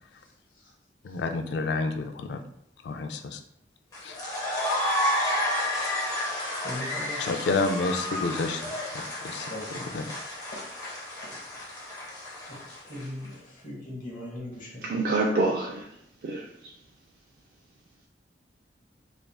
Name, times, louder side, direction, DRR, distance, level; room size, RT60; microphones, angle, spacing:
voice 1, 0.2-0.7 1.1-1.2 6.6-7.3 9.5-10.1 10.5-10.6 11.2-11.7 12.4-12.6 12.9-15.1, left 1 dB, 45° left, -4 dB, 1.0 m, -40 dB
voice 2, 1.0-2.4 2.8-3.4 4.0-4.2 7.2-8.6 9.2-9.5 9.9-10.0, left 3 dB, 75° left, 6 dB, 0.3 m, -29 dB
sound 1, 3.9-13.3, left 1 dB, 20° left, 0.6 m, -31 dB
voice 3, 14.8-15.9 16.2-16.7, right 2 dB, 60° right, -2 dB, 0.3 m, -27 dB
3.2 x 2.4 x 2.2 m, 0.76 s
head